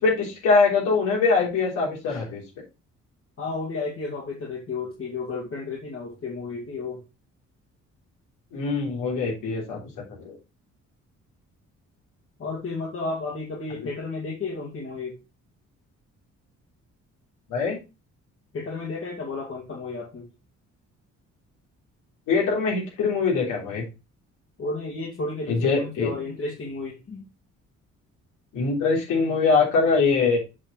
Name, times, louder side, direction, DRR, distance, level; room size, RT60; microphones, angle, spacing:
voice 1, 0.0-2.4 8.5-9.8 10.2-10.4 13.8-13.9 17.5-17.8 22.3-23.8 25.5-26.1 28.5-30.4, left 4 dB, 90° left, -2 dB, 3.5 m, -22 dB
voice 2, 3.4-7.0 12.4-15.2 18.5-20.3 24.6-27.2, left 3 dB, 45° left, -3 dB, 2.2 m, -32 dB
7.3 x 4.5 x 3.9 m, 0.27 s
cardioid pair, 90°, 30 cm